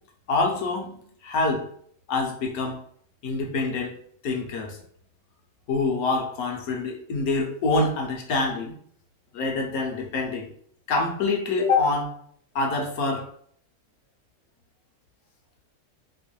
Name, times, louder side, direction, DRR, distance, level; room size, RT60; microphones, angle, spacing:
voice 1, 0.3-1.0 1.2-1.6 2.1-2.8 3.2-4.0 4.2-4.8 5.7-8.7 9.3-10.5 10.9-12.1 12.5-13.3, left 3 dB, 70° left, 1 dB, 1.1 m, -25 dB
3.0 x 2.5 x 3.0 m, 0.62 s
omnidirectional pair, 1.7 m